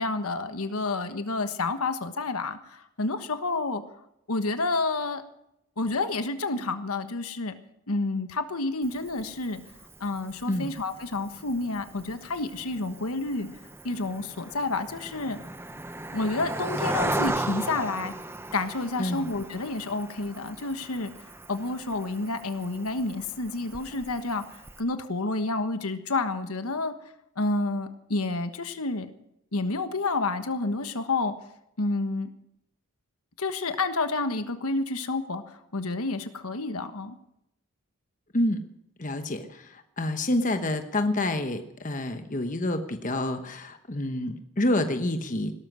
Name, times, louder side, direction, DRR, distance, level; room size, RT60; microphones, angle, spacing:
voice 1, 0.0-3.8 4.3-5.2 5.8-7.5 7.9-9.6 10.0-13.5 13.8-15.4 16.1-18.1 18.5-21.1 21.5-26.9 27.4-29.1 29.5-31.3 31.8-32.3 33.4-37.2, left 3 dB, 80° left, 9 dB, 1.3 m, -29 dB
Cricket, 8.8-24.8, right 1 dB, 10° right, 0.7 m, -37 dB
voice 2, 39.0-45.5, left 1 dB, 35° left, 7 dB, 1.1 m, -28 dB
17.0 x 13.0 x 6.2 m, 0.81 s
head